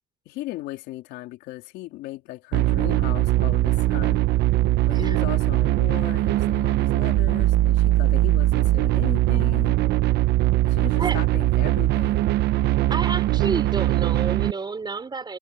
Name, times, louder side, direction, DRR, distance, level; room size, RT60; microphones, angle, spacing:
voice 1, 0.3-4.2 4.9-9.8 10.6-12.3, left 17 dB, 90° left, 3.8 m, -37 dB
sound 1, 2.5-14.5, right 16 dB, 75° right, 1.0 m, -21 dB
voice 2, 12.9-15.4, right 4 dB, 25° right, 4.3 m, -30 dB
cardioid pair, 110°, 17 cm